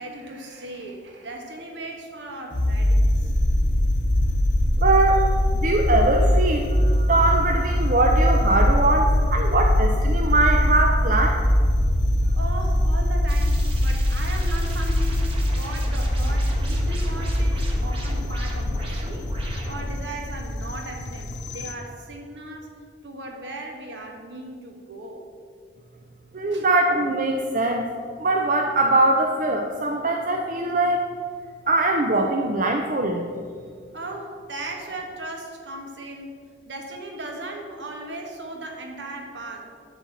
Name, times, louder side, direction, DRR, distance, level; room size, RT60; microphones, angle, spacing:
voice 1, 0.0-3.3 5.1-5.3 9.0-9.2 12.3-22.7 23.0-25.3 26.5-26.7 33.9-39.7, right 2 dB, 70° right, 2 dB, 1.5 m, -37 dB
sound 1, 2.5-21.7, left 1 dB, 75° left, 0.9 m, -22 dB
voice 2, 4.8-5.2 5.6-11.4 26.3-27.9 28.2-31.0 31.7-33.3, right 2 dB, 45° right, 3 dB, 0.6 m, -22 dB
sound 2, 13.3-20.0, right 2 dB, 30° right, 1.4 m, -40 dB
11.0 x 4.2 x 7.1 m, 2.1 s
head